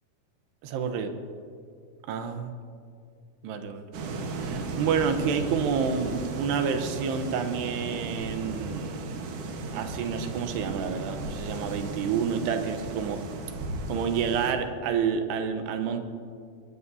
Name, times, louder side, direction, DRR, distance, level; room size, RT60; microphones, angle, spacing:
voice 1, 0.6-1.1 2.1-2.5 3.4-3.9 4.4-9.0 9.7-13.2 13.9-16.0, right 6 dB, 90° right, 6 dB, 3.1 m, -29 dB
sound 1, 3.9-14.5, right 3 dB, 60° right, 2.4 m, -35 dB
23.5 x 20.5 x 2.7 m, 2.3 s
omnidirectional pair, 4.6 m